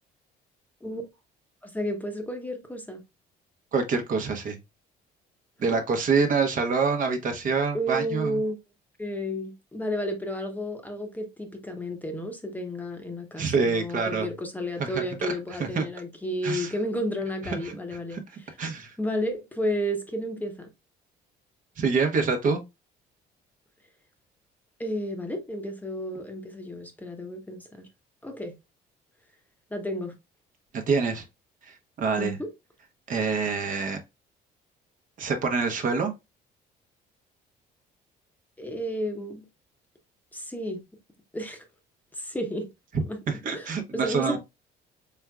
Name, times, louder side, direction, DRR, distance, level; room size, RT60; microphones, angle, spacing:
voice 1, 1.6-3.0 5.6-5.8 7.7-8.6 9.0-18.6 19.0-20.7 24.8-27.9 28.2-28.5 29.7-30.1 32.2-32.5 38.6-39.4 40.3-40.8 41.3-41.6 42.1-42.7 43.1-43.2 43.5-44.4, equal, 10° left, 0.8 m, -32 dB
voice 2, 3.7-4.6 5.6-8.4 13.4-14.3 14.8-15.3 15.6-15.9 16.4-16.7 17.5-17.8 18.1-18.2 18.6-18.9 21.8-22.6 30.7-31.2 31.7-32.4 33.1-34.0 35.2-36.1 43.3-44.4, right 4 dB, 50° right, 0.9 m, -26 dB
4.4 x 3.5 x 2.2 m
cardioid pair, 110°, 17 cm